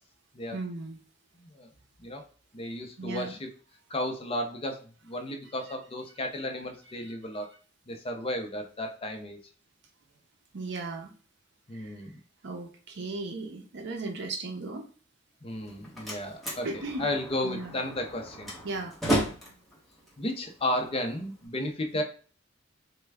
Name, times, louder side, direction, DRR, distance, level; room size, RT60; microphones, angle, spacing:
voice 1, 0.5-1.0 3.0-3.3 10.5-11.1 11.7-11.9 12.4-14.9 16.6-17.0 17.4-17.8 18.6-19.0, right 3 dB, 65° right, 4 dB, 0.6 m, -36 dB
voice 2, 2.5-3.5 3.9-7.5 7.9-9.4 11.7-12.2 15.4-18.5 20.2-22.0, left 1 dB, 30° left, 4 dB, 0.5 m, -33 dB
Slam, 15.5-21.5, right 1 dB, ahead, 1.0 m, -35 dB
3.2 x 2.2 x 3.3 m, 0.39 s
head